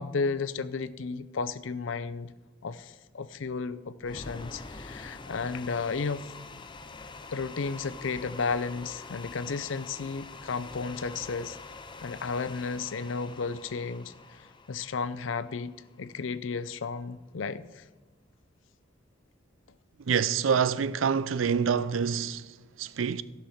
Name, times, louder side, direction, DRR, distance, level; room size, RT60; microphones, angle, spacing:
voice 1, 0.0-2.3 2.6-6.3 7.3-11.6 12.0-17.8, left 4 dB, 70° left, 0.5 m, -33 dB
sound 1, 4.0-16.2, left 3 dB, 25° left, 0.6 m, -45 dB
voice 2, 20.0-23.2, right 6 dB, 80° right, 0.5 m, -27 dB
15.0 x 5.8 x 6.4 m
head